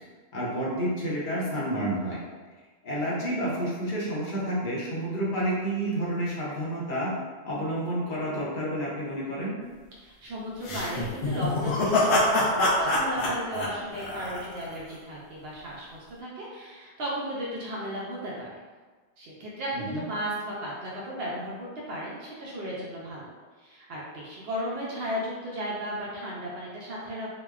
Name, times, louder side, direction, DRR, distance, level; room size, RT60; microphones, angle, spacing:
voice 1, 0.3-2.2 2.8-7.1 7.4-9.6 19.7-20.0, right 1 dB, 50° left, -6 dB, 0.8 m, -30 dB
voice 2, 10.0-18.5 19.2-23.3 23.6-27.3, equal, 65° right, -5 dB, 0.7 m, -35 dB
sound 1, 10.6-14.8, left 2 dB, 75° left, 0.9 m, -25 dB
3.0 x 2.1 x 2.3 m, 1.4 s
omnidirectional pair, 1.2 m